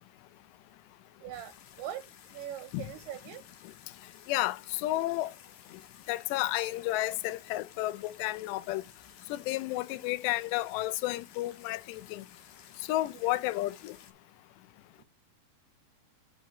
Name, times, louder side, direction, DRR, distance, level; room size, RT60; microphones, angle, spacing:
voice 1, 1.2-2.0 2.3-3.4, right 11 dB, 80° right, 2.6 m, -41 dB
sound 1, 1.3-14.1, left 9 dB, 65° left, 2.4 m, -55 dB
voice 2, 4.3-5.3 6.1-8.8 9.3-12.2 12.9-14.0, left 17 dB, 85° left, 2.8 m, -32 dB
8.4 x 7.3 x 2.9 m
omnidirectional pair, 4.9 m